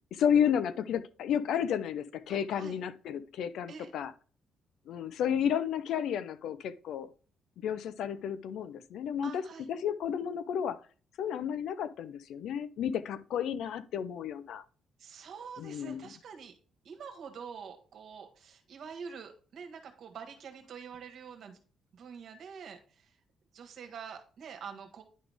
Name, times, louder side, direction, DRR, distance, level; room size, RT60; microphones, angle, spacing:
voice 1, 0.1-4.1 4.9-7.1 7.6-9.4 9.7-10.8 11.2-14.6 15.6-16.1, left 8 dB, 75° left, 0.6 m, -32 dB
voice 2, 2.3-2.8 3.7-3.9 9.2-9.7 15.0-16.6 16.8-21.6 21.9-23.2 23.5-25.0, right 6 dB, 65° right, 1.5 m, -46 dB
10.0 x 4.0 x 3.5 m
cardioid pair, 90°, 0 cm